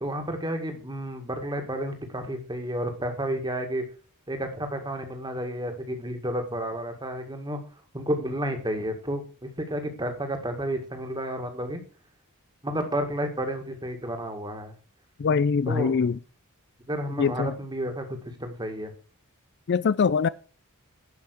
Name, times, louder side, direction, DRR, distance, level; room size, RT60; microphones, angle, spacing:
voice 1, 0.0-3.8 4.3-7.6 7.9-11.8 12.6-14.7 15.7-16.0 16.9-18.0 18.4-18.9, right 1 dB, 20° right, 2.0 m, -31 dB
voice 2, 15.2-16.2 17.2-17.5 19.7-20.3, left 5 dB, 50° left, 0.4 m, -23 dB
11.0 x 5.8 x 6.4 m
head